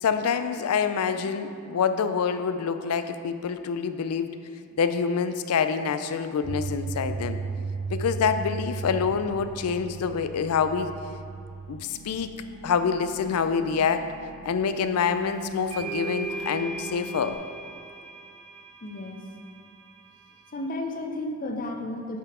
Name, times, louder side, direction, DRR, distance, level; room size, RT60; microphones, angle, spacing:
voice 1, 0.0-4.3 4.8-7.4 7.9-10.9 11.7-12.3 12.6-14.1 14.5-17.3, left 6 dB, 85° left, 10 dB, 0.4 m, -26 dB
sound 1, 6.4-17.3, right 4 dB, 55° right, 0.3 m, -37 dB
sound 2, 15.1-15.2 15.7-20.5, right 4 dB, 85° right, 1.3 m, -39 dB
voice 2, 18.8-19.2 20.5-22.2, left 1 dB, 40° left, 3 dB, 0.6 m, -33 dB
8.5 x 4.1 x 4.2 m, 2.4 s
head